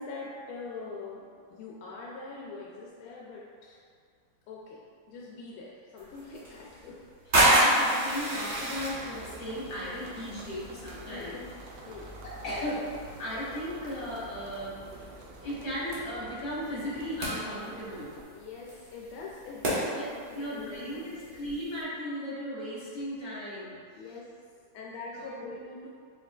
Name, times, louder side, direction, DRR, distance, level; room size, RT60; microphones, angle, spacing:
voice 1, 0.0-3.8 4.5-4.8 5.1-7.0 7.2-7.5 11.1-11.3 11.9-12.1 18.3-21.0 21.3-21.4 24.0-24.3 24.7-25.9, left 3 dB, 90° left, -4 dB, 1.4 m, -43 dB
sound 1, 6.0-21.8, right 1 dB, 40° right, 0.7 m, -32 dB
voice 2, 7.4-11.4 12.2-12.9 13.2-14.8 15.4-18.1 19.9-20.1 20.3-23.8 25.1-25.6, equal, 65° left, -7 dB, 1.9 m, -36 dB
sound 2, 8.7-18.2, right 1 dB, 70° right, 1.1 m, -47 dB
4.7 x 4.2 x 2.3 m, 2.1 s
omnidirectional pair, 2.2 m